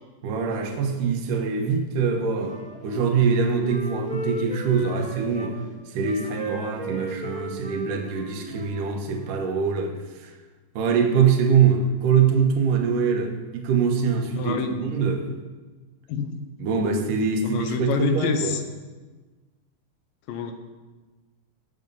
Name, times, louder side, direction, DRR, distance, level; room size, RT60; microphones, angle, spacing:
voice 1, 0.2-2.6 2.8-5.6 5.9-10.3 10.8-15.3 16.6-18.6, right 6 dB, 75° right, 3 dB, 2.8 m, -23 dB
Wind instrument woodwind instrument, 2.4-5.5 6.0-9.4, right 1 dB, 5° left, 1.0 m, -36 dB
voice 2, 14.4-14.7 16.1-16.4 17.4-18.6 20.3-20.5, left 6 dB, 85° left, 6 dB, 2.8 m, -27 dB
18.5 x 6.7 x 5.4 m, 1.3 s
omnidirectional pair, 3.9 m